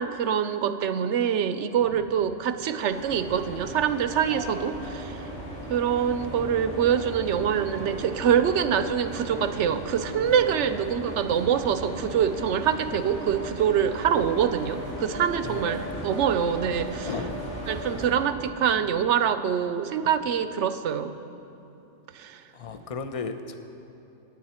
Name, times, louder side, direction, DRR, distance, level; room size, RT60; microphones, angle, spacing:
voice 1, 0.0-5.3 5.7-17.1 17.7-21.2 22.1-22.4, right 8 dB, 75° right, 11 dB, 0.9 m, -25 dB
sound 1, 2.9-18.1, right 1 dB, 90° left, 3.9 m, -36 dB
voice 2, 15.4-16.1 17.0-17.4 22.5-23.6, left 5 dB, 35° left, 8 dB, 0.6 m, -35 dB
23.5 x 9.8 x 4.4 m, 2.9 s
omnidirectional pair, 1.3 m